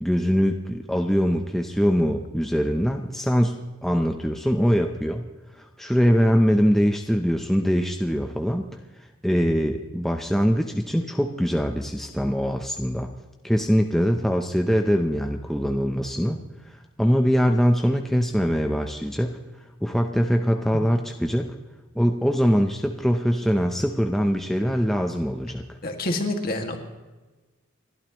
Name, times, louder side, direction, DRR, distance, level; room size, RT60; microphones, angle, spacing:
voice 1, 0.0-5.2 5.5-8.6 9.2-13.1 13.4-16.4 16.7-19.4 19.8-21.6 21.9-25.8, equal, ahead, 3 dB, 0.7 m, -23 dB
voice 2, 25.8-26.8, left 2 dB, 45° left, 3 dB, 2.1 m, -27 dB
30.0 x 12.5 x 3.1 m, 1.2 s
head